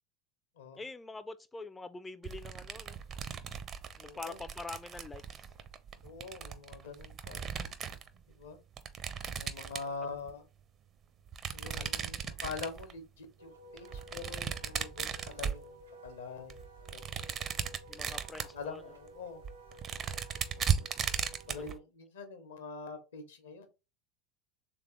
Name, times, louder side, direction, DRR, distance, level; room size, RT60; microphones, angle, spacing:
voice 1, 0.8-3.0 4.0-5.5 9.8-9.9 11.8-11.9 17.9-18.8 21.5-21.7, left 3 dB, 15° left, 0.3 m, -45 dB
sound 1, 2.2-8.1 8.8-10.3 11.3-13.0 13.8-16.1 16.5-18.6 19.1-19.2 19.4-21.7, right 7 dB, 35° right, 0.5 m, -37 dB
voice 2, 4.0-4.4 6.0-7.5 8.3-8.6 9.4-10.4 11.5-17.0 17.5-17.6 18.5-19.4 21.0-23.7, left 4 dB, 80° left, 0.9 m, -44 dB
Wind instrument woodwind instrument, 13.4-21.7, right 1 dB, 85° right, 0.5 m, -54 dB
3.4 x 3.4 x 3.0 m
hypercardioid pair, 85°, 0 cm